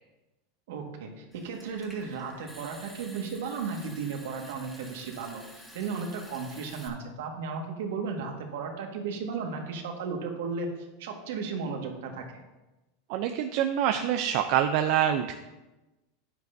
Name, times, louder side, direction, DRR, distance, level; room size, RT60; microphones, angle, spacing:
voice 1, 0.7-10.7 11.0-12.4, right 5 dB, 75° right, 2 dB, 1.8 m, -35 dB
Water tap faucet / Sink (filling or washing) / Trickle dribble, 1.3-6.9, equal, 5° left, 1.9 m, -50 dB
voice 2, 13.1-15.3, right 10 dB, 55° right, 7 dB, 0.5 m, -25 dB
10.5 x 9.4 x 2.7 m, 1.1 s
supercardioid pair, 130°, 0 cm